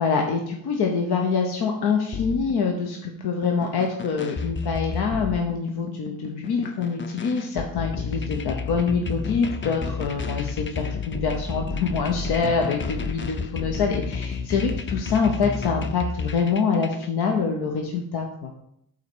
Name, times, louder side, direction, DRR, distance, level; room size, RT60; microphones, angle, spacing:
voice 1, 0.0-18.5, left 5 dB, 90° left, 1 dB, 0.8 m, -25 dB
sound 1, 2.1-17.1, left 5 dB, 30° left, 0.5 m, -32 dB
5.8 x 4.0 x 6.0 m, 0.75 s
cardioid pair, 65°, 37 cm